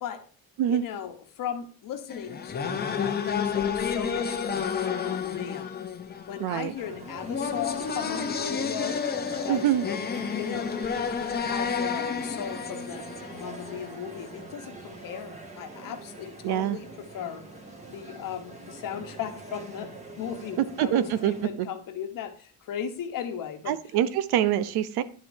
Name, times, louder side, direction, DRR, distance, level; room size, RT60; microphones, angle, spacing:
voice 1, 0.7-5.7 6.3-9.0 9.4-10.7 11.4-17.5 17.9-19.9 20.2-23.8, left 9 dB, 55° left, 7 dB, 1.2 m, -37 dB
sound 1, 2.1-14.0, left 6 dB, 25° left, 0.8 m, -31 dB
voice 2, 6.4-6.7 9.5-9.9 16.4-16.8 20.6-21.3 21.6-21.7 23.7-25.0, right 11 dB, 80° right, 14 dB, 0.8 m, -25 dB
sound 2, 6.8-21.5, right 2 dB, 20° right, 1.9 m, -44 dB
10.0 x 7.5 x 2.7 m, 0.41 s
cardioid pair, 140°, 38 cm